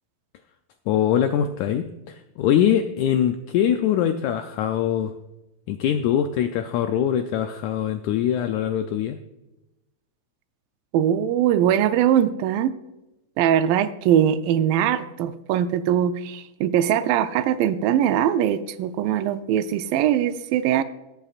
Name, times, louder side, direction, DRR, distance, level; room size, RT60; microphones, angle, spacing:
voice 1, 0.9-5.1 5.7-9.2, left 9 dB, 85° left, 8 dB, 1.6 m, -23 dB
voice 2, 10.9-12.7 13.4-20.8, right 10 dB, 85° right, 11 dB, 2.2 m, -21 dB
18.0 x 8.4 x 2.4 m, 0.97 s
omnidirectional pair, 3.9 m